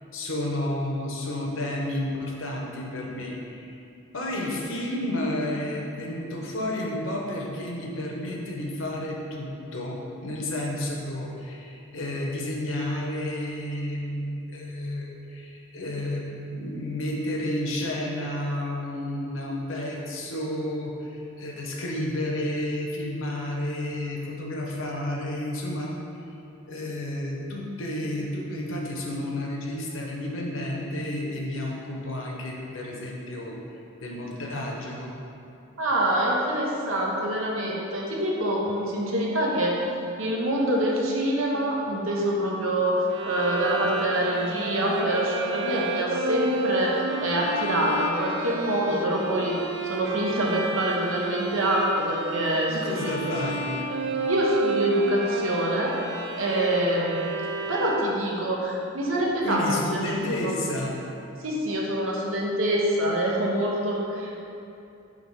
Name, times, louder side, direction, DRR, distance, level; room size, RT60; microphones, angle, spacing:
voice 1, 0.1-3.8 4.1-25.9 26.7-33.6 34.0-35.1 52.7-53.7 59.4-61.0, left 1 dB, 70° left, -1 dB, 0.9 m, -31 dB
voice 2, 35.8-39.7 40.2-52.7 53.0-53.3 54.3-56.0 56.4-57.2 57.7-60.0 60.4-60.5 61.4-64.4, right 1 dB, 70° right, -2 dB, 1.0 m, -25 dB
Bowed string instrument, 43.1-58.4, right 2 dB, 55° right, 0.4 m, -31 dB
5.2 x 3.6 x 5.5 m, 2.7 s
head